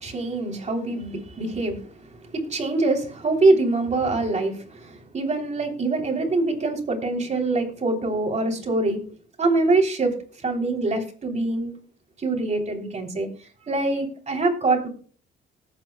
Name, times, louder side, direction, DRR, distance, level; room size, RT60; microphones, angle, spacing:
voice 1, 0.0-9.1 9.4-11.7 12.2-13.3 13.7-14.9, right 2 dB, 35° right, 2 dB, 3.2 m, -24 dB
19.5 x 8.5 x 2.2 m, 0.42 s
cardioid pair, 90°, 20 cm